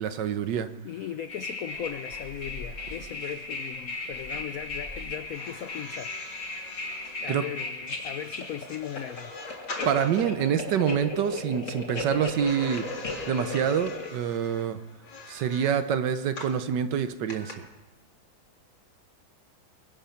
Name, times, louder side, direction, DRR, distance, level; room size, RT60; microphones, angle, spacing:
voice 1, 0.0-0.7 7.3-7.4 9.8-12.8 13.3-14.8 15.3-17.7, right 8 dB, 65° right, 11 dB, 1.3 m, -26 dB
voice 2, 0.8-6.4 7.2-9.3, left 9 dB, 90° left, 10 dB, 0.7 m, -38 dB
sound 1, 1.3-14.1, left 2 dB, 40° left, 2.1 m, -36 dB
sound 2, 1.7-8.8, left 2 dB, 20° left, 1.6 m, -48 dB
sound 3, 5.2-10.4 12.3-16.6 17.3-17.5, left 3 dB, 70° left, 2.8 m, -44 dB
23.0 x 8.9 x 5.7 m, 1.1 s
omnidirectional pair, 2.2 m